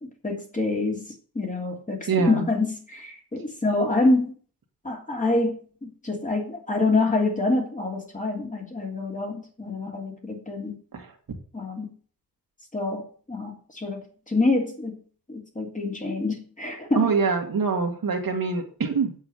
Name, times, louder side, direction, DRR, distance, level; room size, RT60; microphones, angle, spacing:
voice 1, 0.0-4.3 4.8-10.8 11.5-11.9 12.7-14.9 15.3-17.1, left 2 dB, 20° left, 1 dB, 2.9 m, -26 dB
voice 2, 2.1-2.5 10.9-11.1 17.0-19.1, right 5 dB, 65° right, 3 dB, 2.3 m, -24 dB
8.4 x 7.8 x 7.8 m, 0.43 s
wide cardioid pair, 145°, 37 cm